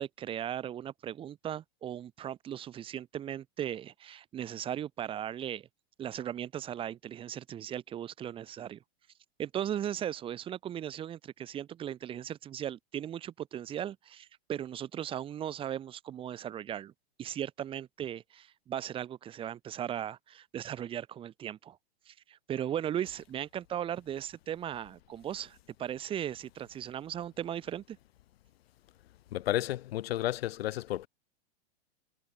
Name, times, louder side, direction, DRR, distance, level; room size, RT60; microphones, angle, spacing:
voice 1, 0.0-5.7 6.0-8.8 9.4-16.9 17.2-21.8 22.1-28.0, right 10 dB, 15° right, 1.6 m, -37 dB
voice 2, 29.3-31.1, left 14 dB, 70° left, 1.0 m, -32 dB
supercardioid pair, 160°, 32 cm